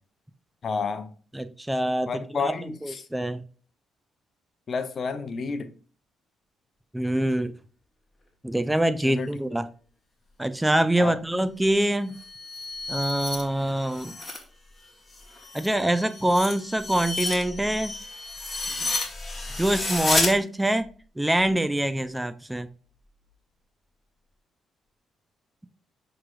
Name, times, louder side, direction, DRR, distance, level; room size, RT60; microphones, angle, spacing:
voice 1, 0.6-1.1 2.1-3.1 4.7-5.7 9.0-9.3 11.0-11.2, left 4 dB, 50° left, 0.5 m, -30 dB
voice 2, 1.3-2.1 2.4-3.4 6.9-7.5 8.4-9.7 10.4-12.1 12.9-14.2 15.5-18.0 18.8-18.9 19.6-20.9 21.2-22.7, right 1 dB, 10° right, 0.4 m, -25 dB
sound 1, 12.0-14.4 14.8-20.3, left 2 dB, 25° left, 1.1 m, -31 dB
5.8 x 3.1 x 2.3 m
cardioid pair, 90°, 0 cm